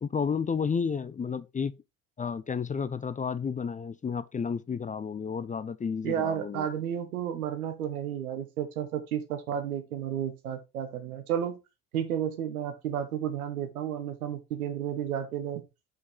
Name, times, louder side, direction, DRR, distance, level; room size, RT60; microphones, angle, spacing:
voice 1, 0.0-1.7 2.2-6.7, left 6 dB, 20° left, 0.5 m, -31 dB
voice 2, 6.0-11.6 11.9-15.6, right 9 dB, 85° right, 1.0 m, -32 dB
5.6 x 5.4 x 3.8 m
figure-of-eight pair, 55°, 42 cm